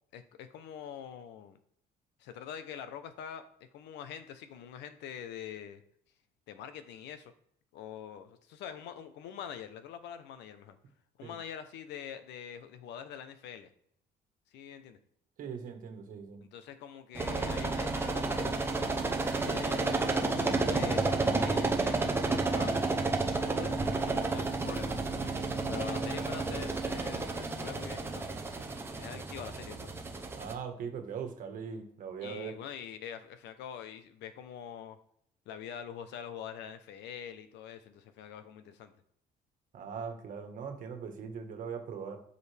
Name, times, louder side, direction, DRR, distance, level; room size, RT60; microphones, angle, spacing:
voice 1, 0.1-1.6 2.2-3.5 3.7-5.8 6.5-7.3 7.7-10.8 11.2-13.7 14.5-15.0 16.5-22.8 23.3-25.0 25.7-28.4 29.0-29.9 32.2-35.0 35.5-38.9, left 8 dB, 90° left, 10 dB, 1.0 m, -44 dB
voice 2, 15.4-16.4 30.3-32.5 39.7-42.2, right 6 dB, 50° right, 5 dB, 1.6 m, -40 dB
sound 1, 17.1-30.5, right 3 dB, 15° right, 0.8 m, -31 dB
12.5 x 5.3 x 3.5 m, 0.67 s
cardioid pair, 165°, 18 cm